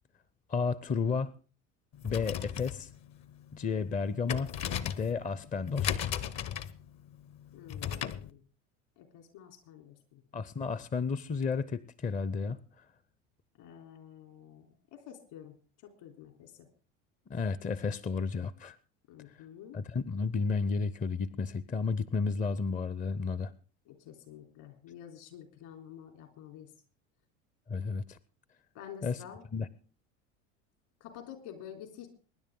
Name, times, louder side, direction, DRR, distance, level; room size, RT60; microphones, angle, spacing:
voice 1, 0.5-1.3 2.0-2.9 3.5-4.5 4.8-6.0 10.3-12.6 17.3-18.8 19.7-23.5 27.7-28.2 29.0-29.2 29.5-29.7, left 4 dB, 20° left, 17 dB, 0.6 m, -32 dB
sound 1, 1.9-8.3, left 9 dB, 45° left, 1.0 m, -37 dB
voice 2, 7.5-8.4 9.0-10.2 13.6-16.7 19.1-19.8 23.9-26.7 28.7-29.4 31.0-32.1, left 9 dB, 65° left, 6 dB, 3.7 m, -49 dB
23.5 x 10.5 x 3.8 m, 0.37 s
hypercardioid pair, 75°, 39 cm